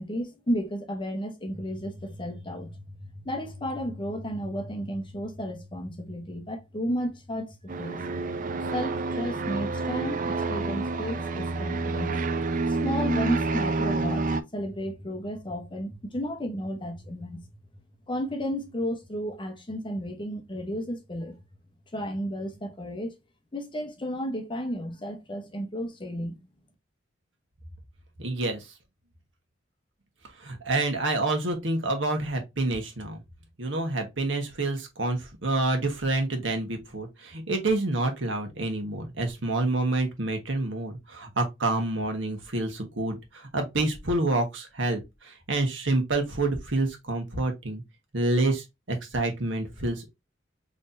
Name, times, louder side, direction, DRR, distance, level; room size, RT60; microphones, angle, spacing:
voice 1, 0.0-8.0 8.7-12.2 12.7-17.4 18.1-21.4 21.9-23.1 23.5-26.4, equal, 25° left, 0.9 m, -33 dB
sound 1, 7.7-14.4, right 3 dB, 45° right, 0.5 m, -28 dB
voice 2, 28.2-28.7 30.4-33.2 33.6-47.8 48.1-50.1, right 2 dB, 75° right, 1.3 m, -28 dB
4.1 x 3.2 x 2.6 m
head